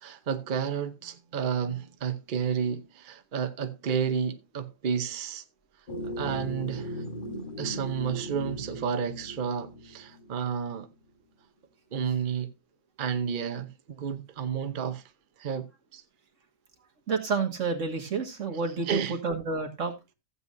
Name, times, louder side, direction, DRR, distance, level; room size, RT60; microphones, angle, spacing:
voice 1, 0.0-5.4 6.0-7.0 7.6-10.9 11.9-12.5 13.0-15.0 15.4-16.0 18.9-19.2, right 7 dB, 45° right, 0.9 m, -31 dB
sound 1, 5.9-10.5, equal, 45° left, 1.4 m, -38 dB
voice 2, 17.1-19.9, right 4 dB, 90° right, 2.1 m, -30 dB
15.0 x 8.1 x 2.6 m
omnidirectional pair, 1.3 m